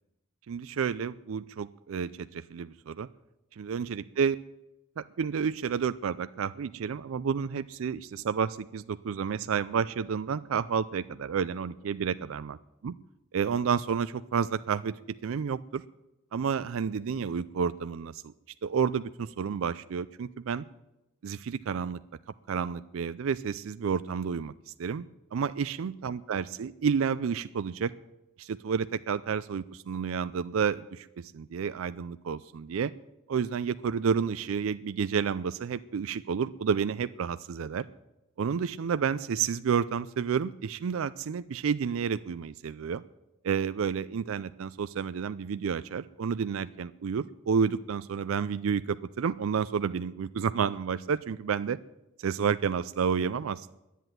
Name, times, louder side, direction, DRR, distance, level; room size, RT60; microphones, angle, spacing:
voice 1, 0.5-3.1 3.5-4.4 5.0-12.5 12.8-12.9 13.3-15.8 16.3-18.3 18.6-20.6 21.2-22.0 22.5-27.9 28.4-32.9 33.3-37.9 38.4-43.0 43.4-51.8 52.2-53.8, right 6 dB, 65° right, 14 dB, 0.4 m, -30 dB
11.0 x 10.0 x 9.2 m, 0.93 s
head